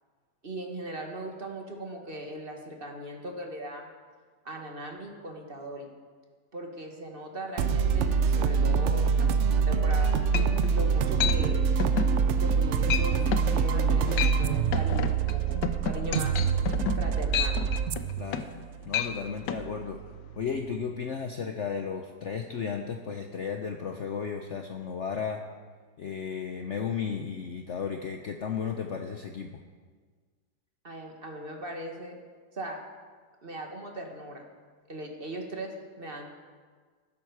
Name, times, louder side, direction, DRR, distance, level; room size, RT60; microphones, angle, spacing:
voice 1, 0.4-3.9 4.4-5.9 6.5-10.2 10.7-11.6 12.4-16.4 16.9-17.7 30.8-32.2 32.5-32.8 33.4-34.5 34.9-36.3, right 1 dB, 30° right, 2 dB, 1.7 m, -39 dB
sound 1, 7.6-21.0, right 6 dB, 80° right, 0.6 m, -26 dB
sound 2, 9.9-10.0 10.3-10.8 11.2-11.4 11.8-12.1 12.5-12.6 12.9-13.1 13.3-13.5 14.0-14.4 14.7-18.6 18.9-19.1 19.5-19.6, left 9 dB, 80° left, 1.4 m, -30 dB
voice 2, 18.2-18.5 18.9-20.0 20.4-25.4 26.0-29.6, left 6 dB, 55° left, 4 dB, 0.9 m, -34 dB
14.5 x 12.0 x 4.8 m, 1.5 s
omnidirectional pair, 1.9 m